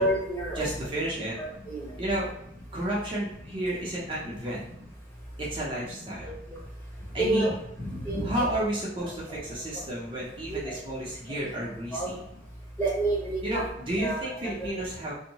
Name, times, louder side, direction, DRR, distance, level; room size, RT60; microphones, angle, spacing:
voice 1, 0.0-0.6 1.4-1.9 6.2-6.4 7.2-7.5 7.8-8.3 9.3-9.4 9.7-9.8 10.5-10.7 11.9-12.1 12.8-13.6 14.0-14.2 14.4-14.8, right 1 dB, 15° left, -5 dB, 0.8 m, -29 dB
voice 2, 0.6-1.4 2.0-2.3 2.7-4.6 5.4-6.3 7.1-7.4 8.2-12.2 13.4-15.1, right 1 dB, 30° right, -6 dB, 0.6 m, -31 dB
2.7 x 2.0 x 2.8 m, 0.75 s
head